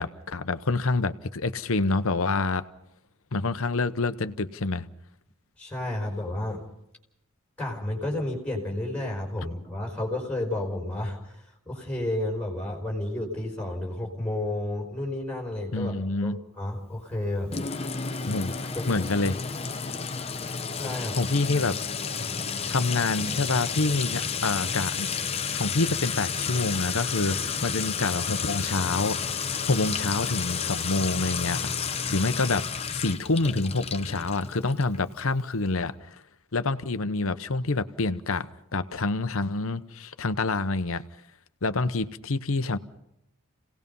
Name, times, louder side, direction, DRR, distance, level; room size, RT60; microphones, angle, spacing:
voice 1, 0.0-2.7 3.3-4.9 15.7-16.4 18.3-18.5 18.9-19.4 21.1-21.8 22.7-25.1 25.5-29.2 29.6-31.6 31.9-32.6 32.9-36.2 36.5-41.0 41.6-42.8, left 3 dB, 65° left, 0.9 m, -27 dB
voice 2, 5.6-6.6 7.6-17.5 18.8-18.9 20.7-21.1, left 1 dB, 5° left, 5.2 m, -31 dB
Sink (filling or washing) / Trickle dribble / Fill (with liquid), 17.5-35.0, left 6 dB, 25° left, 0.8 m, -31 dB
28.5 x 18.0 x 5.5 m
head